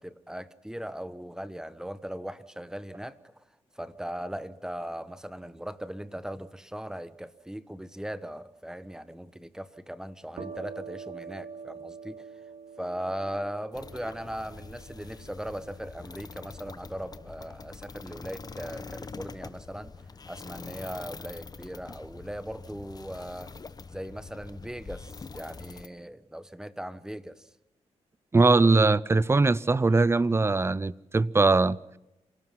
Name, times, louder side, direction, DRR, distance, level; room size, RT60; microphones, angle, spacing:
voice 1, 0.0-3.3 3.7-12.3 12.8-23.5 23.9-27.5, equal, 5° right, 1.2 m, -39 dB
sound 1, 10.3-17.8, right 6 dB, 70° right, 3.5 m, -46 dB
sound 2, 13.7-25.9, left 4 dB, 35° left, 1.0 m, -44 dB
voice 2, 28.3-31.8, right 3 dB, 20° right, 0.7 m, -21 dB
27.5 x 18.5 x 5.9 m
cardioid pair, 80°, 12 cm